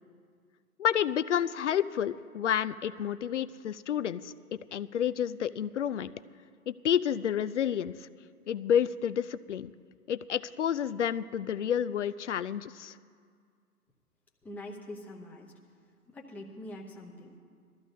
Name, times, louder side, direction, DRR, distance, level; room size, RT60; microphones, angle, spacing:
voice 1, 0.8-6.1 6.7-8.1 8.5-9.7 10.1-13.0, left 9 dB, 55° left, 14 dB, 0.5 m, -30 dB
voice 2, 14.4-15.5 16.1-17.4, left 1 dB, 5° left, -3 dB, 0.9 m, -44 dB
21.5 x 13.5 x 2.7 m, 2.1 s
figure-of-eight pair, 130°, 45 cm